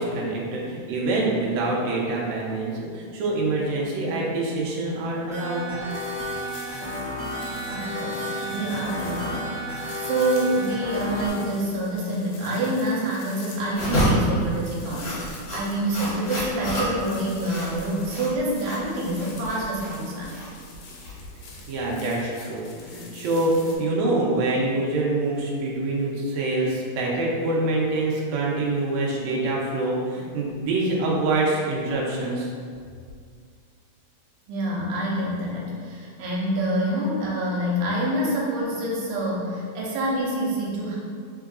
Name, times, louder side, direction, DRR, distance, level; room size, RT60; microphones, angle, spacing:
voice 1, 0.0-5.7 21.7-32.5, right 2 dB, 75° right, -4 dB, 1.9 m, -25 dB
sound 1, 5.3-11.3, equal, 40° right, 1.0 m, -32 dB
sound 2, 5.9-23.8, left 4 dB, 80° left, 1.7 m, -47 dB
voice 2, 7.7-20.3 34.5-41.0, right 1 dB, 90° right, -4 dB, 2.3 m, -27 dB
sound 3, 13.7-21.6, equal, 55° left, 1.3 m, -29 dB
4.4 x 3.8 x 2.4 m, 2.1 s
omnidirectional pair, 3.6 m